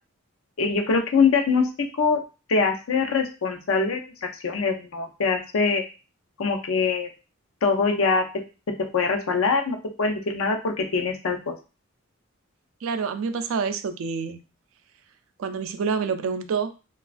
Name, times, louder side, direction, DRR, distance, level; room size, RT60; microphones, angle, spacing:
voice 1, 0.6-2.2 2.5-4.0 4.4-5.9 6.4-7.1 7.6-8.2 8.9-11.5, left 4 dB, 90° left, 4 dB, 0.6 m, -23 dB
voice 2, 12.8-14.4 15.4-16.7, right 5 dB, 70° right, 10 dB, 0.4 m, -27 dB
3.1 x 2.3 x 2.4 m, 0.31 s
head